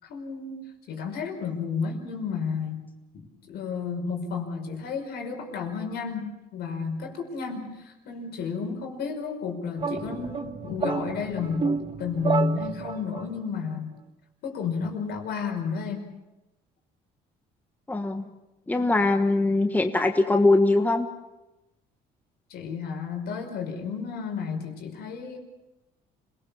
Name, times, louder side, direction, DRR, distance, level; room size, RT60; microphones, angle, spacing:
voice 1, 0.0-2.8 3.1-13.9 14.4-16.1 22.5-25.4, left 5 dB, 75° left, 4 dB, 5.4 m, -32 dB
sound 1, 9.8-13.3, right 5 dB, 30° right, 1.5 m, -30 dB
voice 2, 17.9-18.3 18.7-21.1, left 2 dB, 10° left, 6 dB, 1.4 m, -22 dB
26.5 x 19.5 x 7.1 m, 1.0 s
cardioid pair, 110°, 17 cm